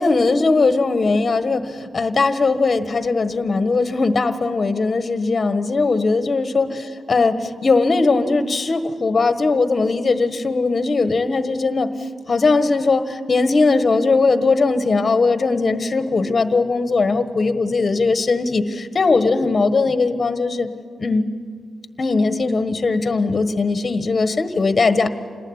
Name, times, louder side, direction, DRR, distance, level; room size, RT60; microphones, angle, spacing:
voice 1, 0.0-11.9 12.3-20.7 21.0-21.2 22.0-25.1, left 3 dB, 40° left, 10 dB, 1.4 m, -19 dB
27.5 x 19.5 x 9.8 m, 2.1 s
wide cardioid pair, 110°, 0 cm